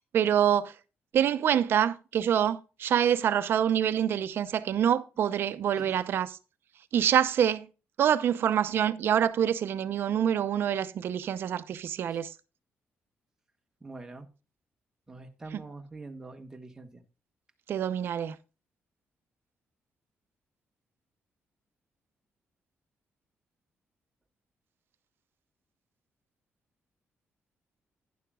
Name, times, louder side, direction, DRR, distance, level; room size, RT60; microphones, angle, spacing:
voice 1, 0.1-0.7 1.1-6.4 6.9-7.7 8.0-12.3 15.5-15.6 17.7-18.4, right 9 dB, 60° right, 0.7 m, -26 dB
voice 2, 13.8-14.3 15.1-17.0, right 3 dB, 15° right, 1.4 m, -44 dB
11.5 x 10.5 x 2.4 m
cardioid pair, 155°, 4 cm